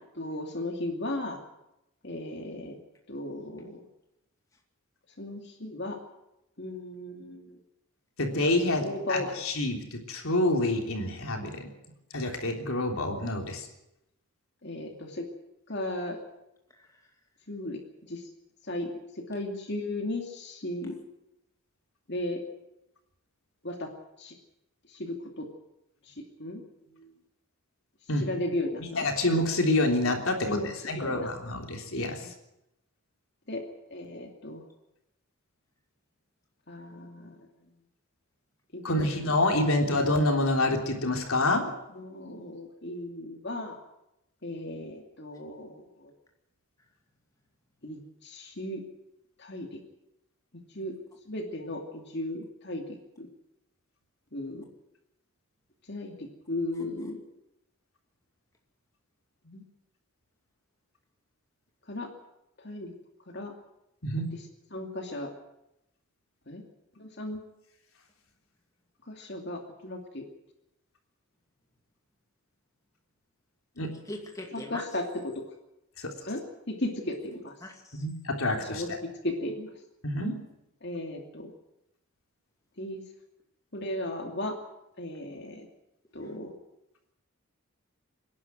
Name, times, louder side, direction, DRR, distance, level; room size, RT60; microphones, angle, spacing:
voice 1, 0.2-1.4 2.0-2.8 3.1-3.8 5.2-6.0 6.6-7.6 8.8-9.3 14.6-15.3 15.7-16.2 17.5-17.8 18.1-18.2 18.6-18.9 19.3-21.0 22.1-22.4 23.6-23.9 24.2-24.3 24.9-25.5 26.1-26.6 28.2-29.1 30.5-31.3 32.2-32.3 33.5-33.6 33.9-34.6 36.7-37.4 38.7-39.1 41.9-43.8 44.4-46.1 47.8-48.8 49.4-49.8 50.7-50.9 51.3-52.8 53.2-53.3 54.3-54.7 55.9-57.2 59.4-59.6 61.9-62.1 62.6-62.9 63.3-63.5 64.3-64.4 64.7-65.3 66.5-66.6 67.0-67.4 69.1-70.2 74.5-75.4 76.3-77.5 78.7-78.9 79.2-79.7 80.8-81.5 82.8-83.0 83.7-84.5 85.0-85.7 86.1-86.5, left 1 dB, 50° left, 2 dB, 2.6 m, -35 dB
voice 2, 8.2-11.7 12.1-13.7 28.1-28.2 28.9-30.6 30.9-32.2 38.8-41.7 64.0-64.3 73.8-73.9 76.0-76.1 77.9-78.8 80.0-80.4, left 1 dB, 70° left, 2 dB, 3.5 m, -27 dB
voice 3, 16.7-17.1 20.9-21.0 56.7-56.8 69.2-69.3 74.0-74.8 77.6-78.0, left 1 dB, 15° left, 1 dB, 2.5 m, -42 dB
26.0 x 11.0 x 9.2 m, 0.87 s
head